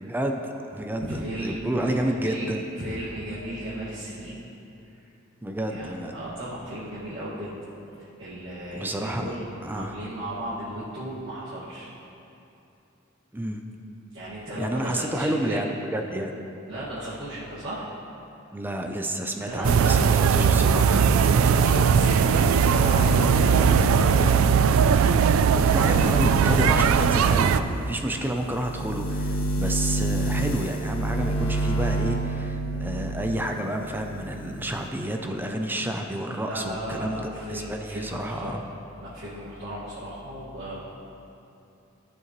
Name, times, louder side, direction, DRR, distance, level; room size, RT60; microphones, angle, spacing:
voice 1, 0.0-2.6 5.4-6.2 8.7-9.4 9.6-9.9 13.3-13.6 14.6-16.4 18.5-21.6 25.6-38.6, right 1 dB, 10° right, 4 dB, 0.4 m, -30 dB
voice 2, 1.0-2.5 2.8-4.3 5.7-7.5 8.2-11.9 14.1-15.7 16.7-17.9 19.3-20.6 21.4-24.3 25.8-26.9 36.5-38.6 39.0-40.8, right 1 dB, 65° right, -11 dB, 1.8 m, -35 dB
sound 1, 19.6-27.6, right 6 dB, 85° right, 0.3 m, -19 dB
sound 2, 20.6-33.5 33.9-34.9, right 2 dB, 80° left, 1.2 m, -30 dB
13.5 x 6.5 x 3.0 m, 2.8 s
head